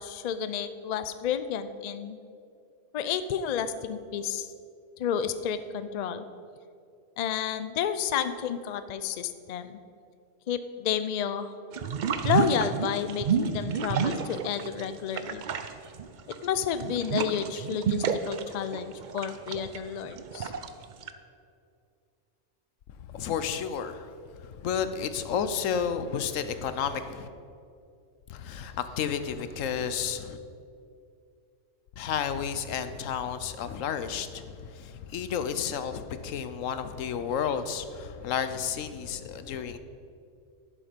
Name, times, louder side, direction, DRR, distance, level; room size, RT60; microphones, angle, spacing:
voice 1, 0.0-2.2 2.9-4.5 5.0-6.3 7.2-9.8 10.5-11.5 12.2-15.4 16.3-20.5, left 8 dB, 60° left, 11 dB, 0.4 m, -31 dB
sound 1, 11.7-14.9 15.1-21.1, right 6 dB, 55° right, 0.5 m, -30 dB
voice 2, 23.1-24.1 24.4-27.3 28.3-30.4 32.0-39.8, left 7 dB, 90° left, 11 dB, 1.1 m, -31 dB
11.5 x 7.5 x 5.2 m, 2.5 s
omnidirectional pair, 1.3 m